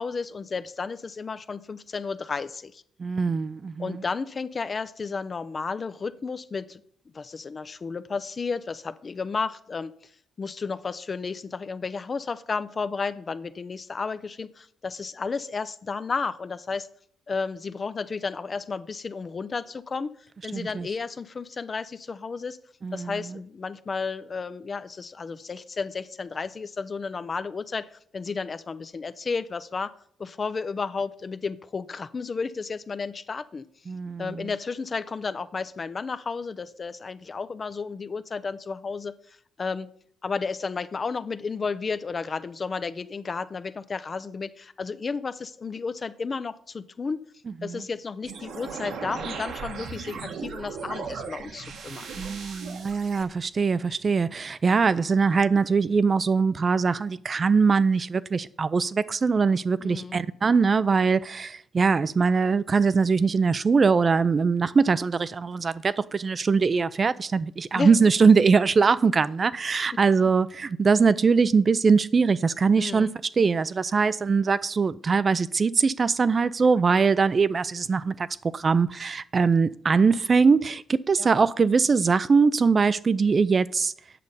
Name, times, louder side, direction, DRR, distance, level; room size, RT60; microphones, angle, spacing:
voice 1, 0.0-2.8 3.8-6.8 7.1-9.9 10.4-16.9 17.3-20.1 20.4-22.6 22.9-29.9 30.2-33.6 34.2-39.9 40.2-47.2 47.6-52.1 59.8-60.2 67.7-67.9 72.8-73.1 81.2-81.3, left 4 dB, 35° left, 0.5 m, -32 dB
voice 2, 3.0-4.0 20.5-20.9 22.8-23.4 33.9-34.5 47.6-47.8 52.2-73.1 73.4-78.3 78.5-83.9, right 5 dB, 35° right, 0.4 m, -22 dB
sound 1, 48.2-53.2, right 5 dB, 75° right, 1.3 m, -37 dB
8.4 x 6.5 x 5.5 m
cardioid pair, 90°, 0 cm